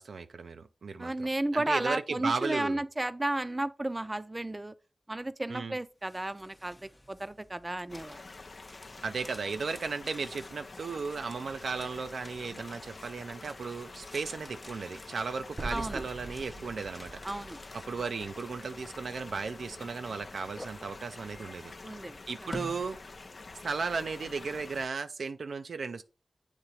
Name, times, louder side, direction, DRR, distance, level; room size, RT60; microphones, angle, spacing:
voice 1, 0.0-2.8 5.5-5.8 9.0-17.2 17.9-21.7 22.3-23.0 23.6-26.0, right 4 dB, 90° right, 0.4 m, -35 dB
voice 2, 1.0-4.7 5.1-8.2 15.7-16.0 17.2-17.6 21.8-22.2, right 1 dB, 25° right, 0.5 m, -33 dB
sound 1, 6.0-23.8, left 1 dB, 25° left, 0.7 m, -52 dB
sound 2, 7.9-24.9, left 3 dB, 65° left, 0.4 m, -47 dB
sound 3, 15.6-19.8, right 2 dB, 60° right, 0.7 m, -44 dB
8.1 x 2.9 x 4.2 m
cardioid pair, 45°, 0 cm